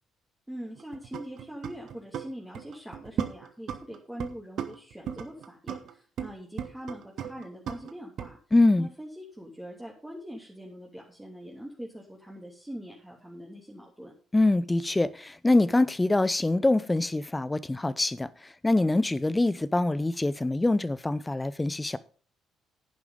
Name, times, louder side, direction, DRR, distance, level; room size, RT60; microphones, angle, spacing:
voice 1, 0.5-8.4 8.8-14.1, equal, 10° right, 3.0 m, -43 dB
sound 1, 0.6-2.3 2.5-4.3 4.6-6.3 6.6-8.3, right 9 dB, 55° right, 1.2 m, -35 dB
voice 2, 8.5-8.9 14.3-18.3 18.6-22.0, left 2 dB, 15° left, 0.7 m, -24 dB
11.0 x 10.5 x 3.9 m
figure-of-eight pair, 45°, 0 cm